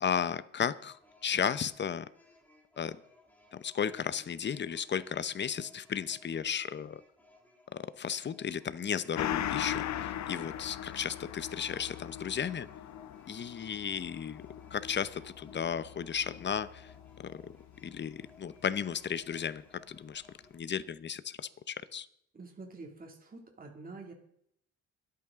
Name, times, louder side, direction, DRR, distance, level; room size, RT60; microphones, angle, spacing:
voice 1, 0.0-2.1 2.8-3.0 3.5-7.0 7.7-12.7 13.3-14.4 14.7-16.9 17.2-17.6 17.8-20.2 20.5-22.1, left 7 dB, 35° left, 0.8 m, -34 dB
sound 1, 0.8-20.6, left 2 dB, 5° left, 2.9 m, -62 dB
Gong, 9.1-18.1 18.5-18.6, left 11 dB, 65° left, 0.8 m, -40 dB
voice 2, 22.3-24.1, right 3 dB, 30° right, 2.4 m, -47 dB
23.0 x 8.7 x 3.7 m
cardioid pair, 90°, 30 cm